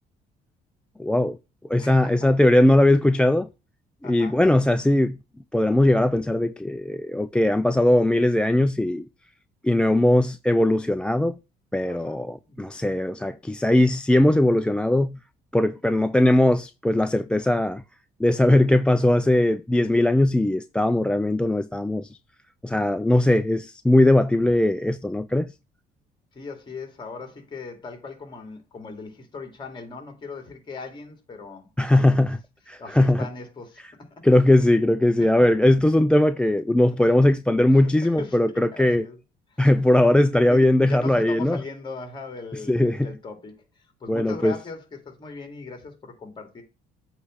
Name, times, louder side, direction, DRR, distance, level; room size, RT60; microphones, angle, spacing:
voice 1, 1.0-1.4 1.7-3.5 4.0-5.2 5.5-9.1 9.6-11.4 11.7-15.2 15.5-17.8 18.2-22.1 22.6-25.5 31.8-32.4 32.7-33.3 34.2-39.0 39.6-41.6 42.7-43.1 44.1-44.6, left 1 dB, 5° left, 0.4 m, -20 dB
voice 2, 1.8-2.3 4.0-4.4 11.9-12.2 12.5-12.6 26.3-32.3 32.8-34.1 35.2-35.5 38.0-39.2 39.5-39.7 40.5-46.6, left 4 dB, 25° left, 2.6 m, -39 dB
8.2 x 3.3 x 6.3 m
cardioid pair, 110°, 17 cm